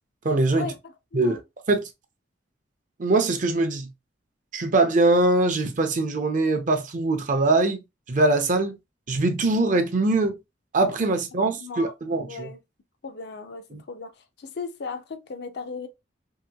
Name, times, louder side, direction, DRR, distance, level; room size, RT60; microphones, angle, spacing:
voice 1, 0.2-0.7 1.1-1.4 1.7-1.8 3.0-3.9 4.5-8.8 9.1-10.4 10.7-12.5 13.7-13.8, right 2 dB, 45° right, 0.5 m, -22 dB
voice 2, 11.3-11.9 12.3-12.6 13.0-15.9, left 4 dB, 60° left, 0.5 m, -36 dB
3.0 x 2.8 x 2.3 m
head